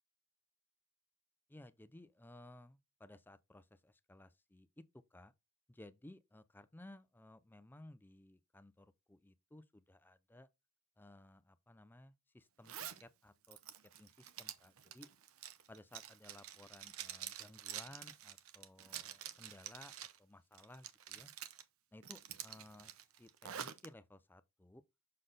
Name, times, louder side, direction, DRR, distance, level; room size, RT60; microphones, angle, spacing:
voice 1, 1.5-5.3 5.7-10.5 11.0-12.7 13.0-13.6 14.0-15.1 15.7-21.3 21.9-22.9 23.2-24.8, left 1 dB, 10° left, 0.4 m, -58 dB
Zipper (clothing), 12.6-13.0 13.4-20.2 20.5-21.6 22.0-23.9, right 10 dB, 85° right, 0.7 m, -48 dB
6.5 x 4.0 x 3.8 m
head